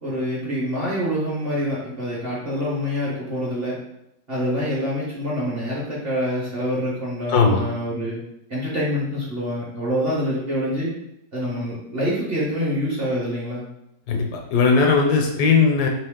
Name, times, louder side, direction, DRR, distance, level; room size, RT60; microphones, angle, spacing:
voice 1, 0.0-3.8 4.3-8.2 8.5-10.9 11.3-13.6, equal, 45° right, -6 dB, 0.9 m, -26 dB
voice 2, 7.3-7.6 14.1-15.9, left 5 dB, 75° left, 2 dB, 1.0 m, -18 dB
3.0 x 2.9 x 3.5 m, 0.82 s
omnidirectional pair, 1.9 m